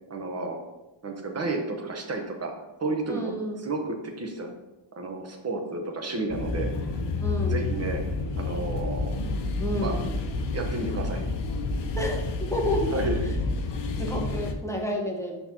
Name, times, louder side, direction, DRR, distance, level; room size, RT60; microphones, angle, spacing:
voice 1, 0.1-0.6 1.0-2.5 2.8-3.3 3.6-4.5 5.0-6.7 7.5-8.0 8.4-9.1 9.7-10.0 10.5-11.3 12.9-13.3, right 2 dB, 30° right, 3 dB, 1.1 m, -31 dB
voice 2, 3.1-3.6 7.2-7.6 9.6-10.2 12.0-13.3 14.0-15.5, left 1 dB, 5° left, -1 dB, 1.0 m, -30 dB
sound 1, 6.3-14.5, left 3 dB, 60° left, 0.9 m, -29 dB
5.4 x 4.5 x 4.3 m, 0.98 s
cardioid pair, 125°, 47 cm